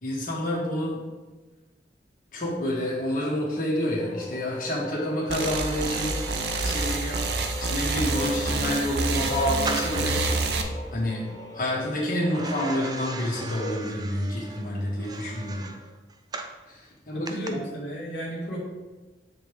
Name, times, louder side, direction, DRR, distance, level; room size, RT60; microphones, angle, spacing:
voice 1, 0.0-1.0 2.3-10.6 10.9-11.3 11.5-15.6 16.7-17.6, left 1 dB, 50° left, -5 dB, 1.6 m, -29 dB
sound 1, 4.0-13.8, left 2 dB, 20° left, 0.7 m, -39 dB
sound 2, 5.2-10.4 12.3-16.6 17.3-17.5, right 3 dB, 25° right, 0.4 m, -39 dB
sound 3, 5.3-10.6, right 3 dB, 65° right, 0.7 m, -28 dB
voice 2, 17.1-18.6, equal, 85° left, -4 dB, 1.7 m, -34 dB
7.7 x 3.4 x 4.9 m, 1.2 s
head